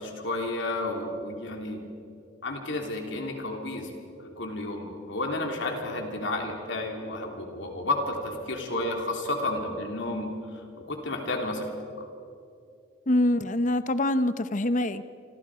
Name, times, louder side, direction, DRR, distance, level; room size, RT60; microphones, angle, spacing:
voice 1, 0.0-1.8 2.4-3.9 4.2-10.3 10.9-11.7 12.0-12.1, left 2 dB, 65° left, 2 dB, 3.4 m, -31 dB
voice 2, 13.1-15.0, left 1 dB, 40° left, 12 dB, 0.8 m, -25 dB
28.0 x 25.0 x 5.0 m, 2.6 s
head